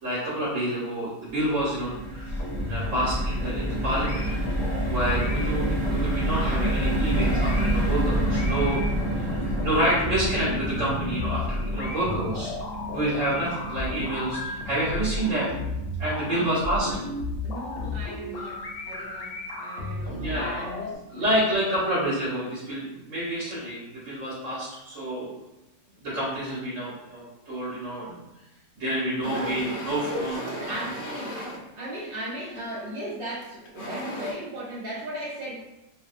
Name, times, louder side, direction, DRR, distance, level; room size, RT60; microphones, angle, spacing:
voice 1, 0.0-2.4 2.7-4.3 4.9-8.8 9.2-12.5 12.9-15.5 16.0-16.9 20.2-20.6 21.1-25.3 26.0-28.2 28.8-30.4, right 1 dB, 60° right, -9 dB, 1.1 m, -28 dB
sound 1, 1.3-17.6 18.0-18.1 18.4-18.6, right 1 dB, 40° right, 1.1 m, -29 dB
sound 2, 2.3-21.0, left 2 dB, 70° left, 0.9 m, -34 dB
voice 2, 16.3-17.0 17.4-21.5 29.2-29.7 30.1-31.5 31.8-35.5, equal, 80° right, -6 dB, 0.5 m, -37 dB
sound 3, 29.2-31.6 32.5-32.8 33.4-34.3, equal, 90° left, 0.4 m, -36 dB
2.6 x 2.1 x 2.4 m, 0.93 s
omnidirectional pair, 1.5 m